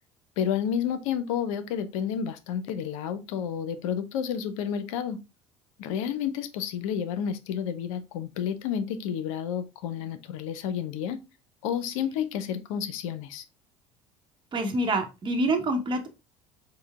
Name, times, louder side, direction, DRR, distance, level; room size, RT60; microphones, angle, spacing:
voice 1, 0.4-5.2 5.8-11.2 11.6-13.4, left 8 dB, 70° left, 0.5 m, -30 dB
voice 2, 14.5-16.1, right 2 dB, 30° right, 0.9 m, -26 dB
4.4 x 2.0 x 3.4 m
hypercardioid pair, 65°, 17 cm